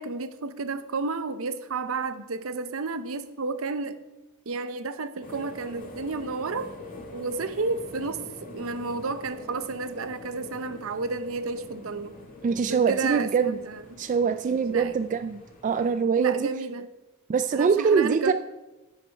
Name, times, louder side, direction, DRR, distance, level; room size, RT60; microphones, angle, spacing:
voice 1, 0.0-4.0 4.5-6.7 7.1-12.1 12.7-14.0 14.7-15.0 16.1-16.9 17.5-18.3, right 3 dB, 75° right, 11 dB, 0.7 m, -31 dB
sound 1, 5.2-16.0, left 1 dB, 40° left, 1.8 m, -45 dB
voice 2, 12.4-13.6 14.0-16.5 17.3-18.3, right 6 dB, 35° right, 10 dB, 0.3 m, -24 dB
10.0 x 8.3 x 4.5 m, 1.1 s
head